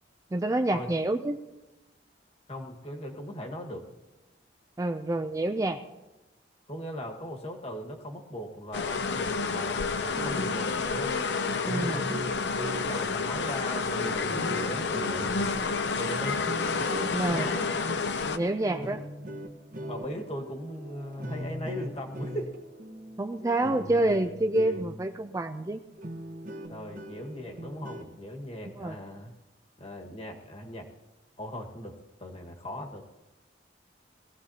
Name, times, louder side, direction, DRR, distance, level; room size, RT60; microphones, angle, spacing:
voice 1, 0.3-1.4 4.8-5.8 11.7-12.0 17.1-17.5 17.8-18.0 18.3-19.0 23.2-25.8 28.8-29.0, right 2 dB, 20° right, 7 dB, 0.4 m, -28 dB
voice 2, 2.5-3.9 6.7-11.2 11.7-12.2 12.7-15.3 16.0-16.4 17.3-17.7 18.2-19.0 19.8-22.5 26.7-29.3 29.8-30.9 31.4-33.0, equal, 35° left, 2 dB, 1.6 m, -39 dB
sound 1, 8.7-18.4, left 4 dB, 70° left, 0.7 m, -29 dB
sound 2, 10.1-25.2 25.6-25.7 26.0-28.2, equal, 50° right, 1.2 m, -40 dB
21.0 x 15.0 x 2.8 m, 1.1 s
head